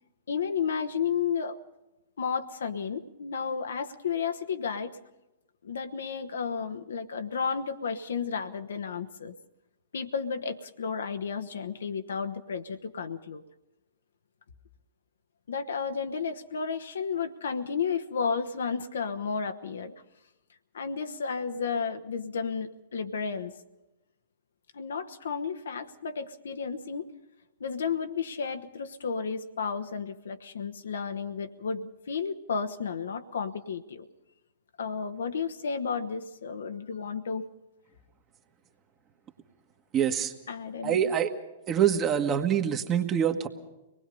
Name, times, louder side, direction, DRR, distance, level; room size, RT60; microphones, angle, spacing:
voice 1, 0.3-1.6 2.2-4.9 5.6-9.3 9.9-13.4 15.5-19.9 20.7-23.6 24.7-27.1 27.6-34.1 34.8-37.5 40.5-41.1, left 6 dB, 65° left, 9 dB, 1.2 m, -32 dB
voice 2, 39.9-40.3 40.8-41.3 41.7-43.5, right 9 dB, 25° right, 6 dB, 1.6 m, -25 dB
24.5 x 19.5 x 5.5 m, 1.0 s
figure-of-eight pair, 105°, 0 cm